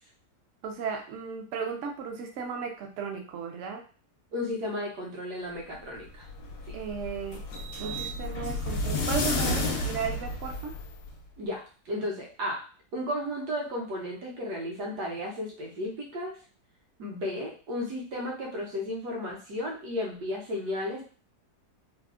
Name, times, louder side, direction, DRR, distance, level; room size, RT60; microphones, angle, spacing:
voice 1, 0.6-3.8 6.7-7.4 7.8-10.7, right 6 dB, 65° right, 2 dB, 0.8 m, -35 dB
voice 2, 4.3-6.3 6.7-6.8 11.4-12.7 12.9-16.4 17.0-21.0, left 1 dB, 80° right, -2 dB, 1.4 m, -34 dB
sound 1, 6.1-11.1, left 2 dB, 80° left, 1.2 m, -31 dB
3.4 x 2.0 x 2.4 m, 0.38 s
omnidirectional pair, 1.7 m